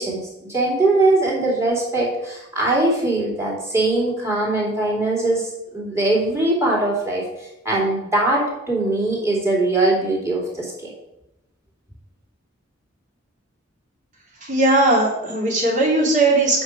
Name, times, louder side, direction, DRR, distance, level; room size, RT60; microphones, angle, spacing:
voice 1, 0.0-7.2 7.6-10.9, right 2 dB, 15° right, -4 dB, 2.7 m, -21 dB
voice 2, 14.4-16.6, right 2 dB, 40° right, -2 dB, 2.3 m, -18 dB
7.9 x 6.3 x 4.8 m, 0.89 s
head